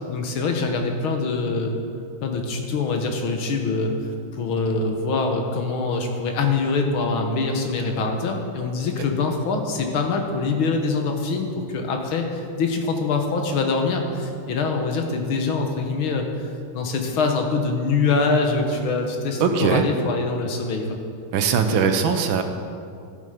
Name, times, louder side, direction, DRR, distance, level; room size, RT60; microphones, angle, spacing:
voice 1, 0.1-1.7 2.2-3.9 4.3-21.0 21.7-21.9, left 4 dB, 90° left, 3 dB, 2.0 m, -24 dB
voice 2, 19.4-19.9 21.3-22.4, right 6 dB, 75° right, 7 dB, 1.5 m, -20 dB
13.0 x 7.6 x 5.0 m, 2.4 s
omnidirectional pair, 2.2 m